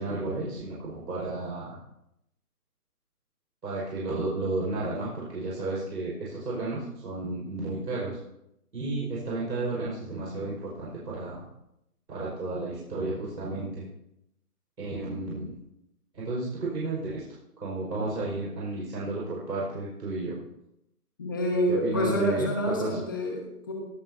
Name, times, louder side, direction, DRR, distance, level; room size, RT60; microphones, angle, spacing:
voice 1, 0.0-1.8 3.6-8.2 8.7-11.4 12.1-13.9 14.8-15.5 16.1-17.2 17.6-20.4 21.8-23.0, right 2 dB, 90° right, -6 dB, 5.1 m, -32 dB
voice 2, 21.2-23.7, equal, 15° left, 1 dB, 1.1 m, -28 dB
18.0 x 11.5 x 2.7 m, 0.82 s
hypercardioid pair, 175°, 47 cm